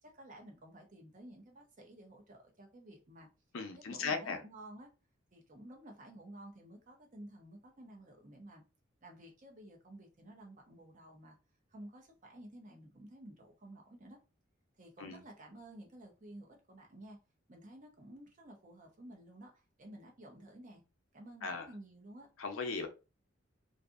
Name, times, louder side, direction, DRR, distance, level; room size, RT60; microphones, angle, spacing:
voice 1, 0.0-3.3 3.7-4.9 5.3-8.6 9.0-11.4 11.7-14.2 14.8-17.2 17.5-20.8 21.1-22.3, right 1 dB, 40° right, 0.7 m, -53 dB
voice 2, 3.5-4.4 15.0-15.2 21.4-21.7 22.4-22.9, left 4 dB, 90° left, 0.6 m, -37 dB
2.6 x 2.5 x 2.4 m
head